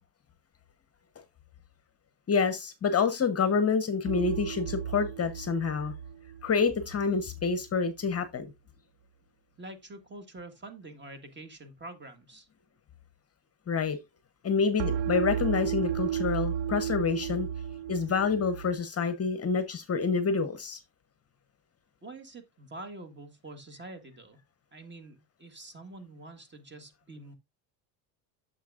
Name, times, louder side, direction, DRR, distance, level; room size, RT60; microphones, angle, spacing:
voice 1, 2.3-5.9 6.4-8.5 13.7-14.0 14.4-17.5 17.9-20.8, left 5 dB, 30° left, 0.9 m, -27 dB
sound 1, 4.1-7.1 14.8-18.8, right 9 dB, 65° right, 0.6 m, -33 dB
voice 2, 9.6-12.5 22.0-24.4 24.7-27.4, right 2 dB, 20° right, 1.6 m, -46 dB
9.2 x 6.9 x 2.4 m
supercardioid pair, 105°, 48 cm